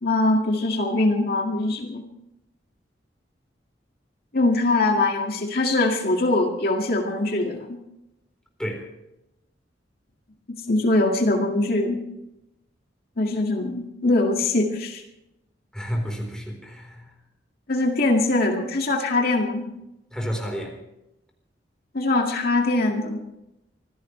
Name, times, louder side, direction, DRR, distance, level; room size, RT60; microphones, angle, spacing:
voice 1, 0.0-2.1 4.3-7.8 10.5-12.0 13.2-15.0 17.7-19.7 21.9-23.4, left 2 dB, 55° left, 1 dB, 2.1 m, -22 dB
voice 2, 15.7-17.1 20.1-20.8, equal, 5° left, 1 dB, 4.1 m, -30 dB
25.5 x 16.0 x 3.3 m, 0.89 s
head